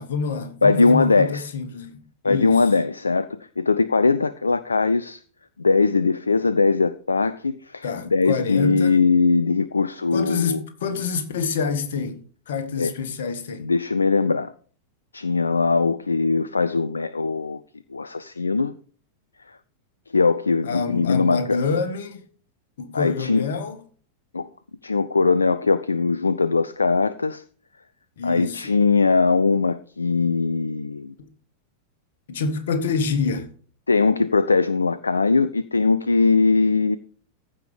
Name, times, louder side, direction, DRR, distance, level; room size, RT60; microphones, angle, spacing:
voice 1, 0.0-2.7 7.8-8.9 10.1-13.7 20.6-22.2 22.8-23.8 28.2-28.8 32.3-33.5, left 5 dB, 60° left, 1.7 m, -27 dB
voice 2, 0.6-1.5 2.2-5.2 5.6-10.6 12.8-12.9 13.6-14.5 15.1-17.6 17.9-18.7 19.5-19.6 20.1-21.6 22.9-23.5 24.3-24.5 24.8-27.4 28.2-31.1 33.9-37.0, left 4 dB, 75° left, 0.4 m, -20 dB
15.0 x 5.7 x 5.0 m
figure-of-eight pair, 90°, 0 cm